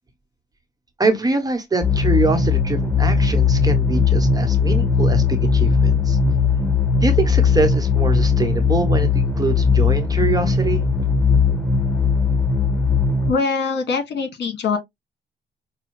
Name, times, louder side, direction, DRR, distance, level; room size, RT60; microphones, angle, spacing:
voice 1, 1.0-6.2 7.0-10.8, right 3 dB, 20° right, 1.1 m, -23 dB
sound 1, 1.8-13.3, left 5 dB, 10° left, 1.7 m, -18 dB
voice 2, 13.3-14.8, left 4 dB, 60° left, 1.7 m, -22 dB
5.4 x 2.3 x 3.1 m
cardioid pair, 90°, 20 cm